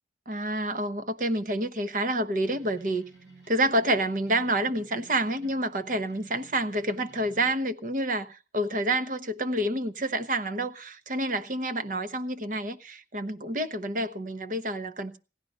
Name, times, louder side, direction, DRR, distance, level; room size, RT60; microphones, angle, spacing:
voice 1, 0.3-3.0 3.5-15.2, right 1 dB, 45° right, 1.0 m, -28 dB
sound 1, 2.4-7.5, right 3 dB, 85° right, 6.7 m, -53 dB
17.0 x 11.5 x 5.5 m
head